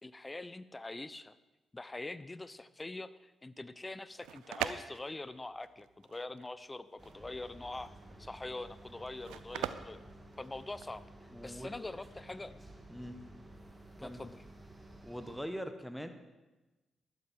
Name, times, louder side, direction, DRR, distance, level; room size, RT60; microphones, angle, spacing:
voice 1, 0.0-1.3 1.7-7.9 8.2-10.0 10.4-11.0 11.4-12.6 14.0-14.4, left 2 dB, 25° left, 16 dB, 0.7 m, -44 dB
sound 1, 4.0-11.0, right 12 dB, 85° right, 0.5 m, -43 dB
sound 2, 7.0-15.3, right 1 dB, 15° right, 2.4 m, -53 dB
voice 2, 11.3-11.7 12.9-13.2 14.0-14.2 15.0-16.1, equal, 5° left, 8 dB, 1.5 m, -42 dB
12.5 x 12.5 x 4.6 m, 1.1 s
hypercardioid pair, 45°, 0 cm